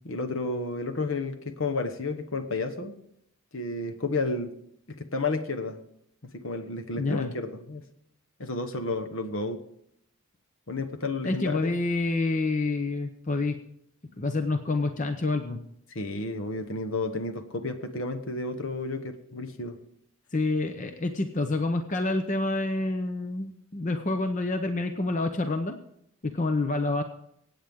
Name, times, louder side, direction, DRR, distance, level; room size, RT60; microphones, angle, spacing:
voice 1, 0.0-3.0 3.5-4.5 4.9-5.8 6.2-7.8 8.4-9.6 10.7-11.7 15.9-19.8, left 3 dB, 65° left, 8 dB, 1.2 m, -31 dB
voice 2, 7.0-7.3 11.2-13.6 14.2-15.6 20.3-25.8 26.2-27.0, left 2 dB, 35° left, 7 dB, 0.7 m, -28 dB
25.0 x 8.8 x 3.6 m, 0.74 s
head